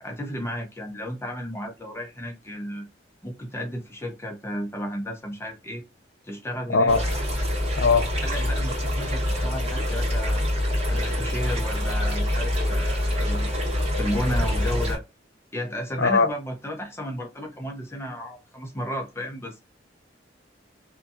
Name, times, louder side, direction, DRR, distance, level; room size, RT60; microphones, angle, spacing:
voice 1, 0.0-2.8 3.2-5.8 6.2-7.0 8.2-10.4 10.9-13.5 14.0-15.0 15.5-19.6, equal, 15° left, 0.6 m, -33 dB
sound 1, 6.9-15.0, left 1 dB, 35° right, 1.6 m, -25 dB
voice 2, 7.8-8.1 16.0-16.3, left 4 dB, 70° left, 0.6 m, -19 dB
2.7 x 2.6 x 2.3 m
head